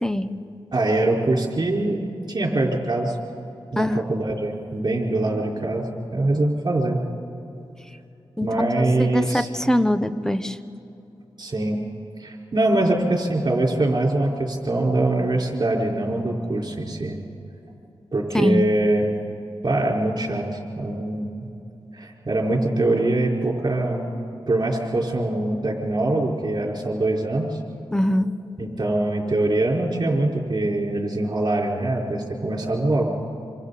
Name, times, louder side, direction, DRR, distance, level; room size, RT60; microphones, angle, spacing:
voice 1, 0.7-2.0 2.3-3.2 3.7-7.0 8.4-9.5 11.4-11.8 12.2-17.2 18.1-19.1 19.6-21.3 21.9-24.1 24.5-27.5 28.6-33.2, right 2 dB, 45° right, -1 dB, 4.6 m, -23 dB
voice 2, 3.8-4.1 8.4-8.5 9.0-10.6 18.3-18.6 27.9-28.3, left 1 dB, 5° left, 11 dB, 0.9 m, -22 dB
27.0 x 26.0 x 4.2 m, 2.7 s
cardioid pair, 60°, 10 cm